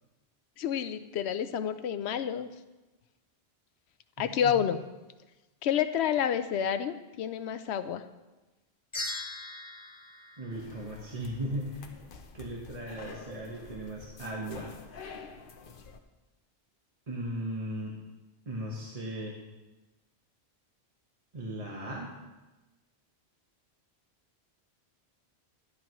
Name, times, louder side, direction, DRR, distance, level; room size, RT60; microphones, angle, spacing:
voice 1, 0.6-2.5 4.2-4.8 5.6-8.0, left 9 dB, 85° left, 11 dB, 0.9 m, -29 dB
voice 2, 4.2-4.5 10.4-11.9 12.3-14.7 17.1-17.9 18.5-19.4 21.3-22.1, right 1 dB, 35° right, -3 dB, 1.3 m, -37 dB
sound 1, 8.9-11.4, left 2 dB, 30° left, 1.2 m, -40 dB
sound 2, 10.5-16.0, left 5 dB, 55° left, 0.9 m, -48 dB
13.0 x 10.0 x 3.0 m, 1.1 s
omnidirectional pair, 1.1 m